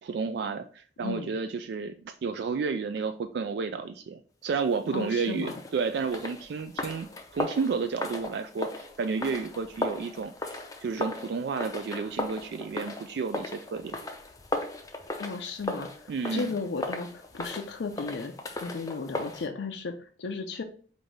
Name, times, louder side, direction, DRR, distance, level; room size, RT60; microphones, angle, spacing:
voice 1, 0.0-14.0 16.1-16.5, right 5 dB, 65° right, 9 dB, 0.3 m, -31 dB
voice 2, 4.9-5.6 15.2-15.9 16.3-18.3 18.6-20.6, left 4 dB, 80° left, 4 dB, 0.5 m, -34 dB
sound 1, 5.4-19.5, left 2 dB, 20° left, 0.5 m, -37 dB
5.1 x 2.6 x 3.2 m, 0.43 s
head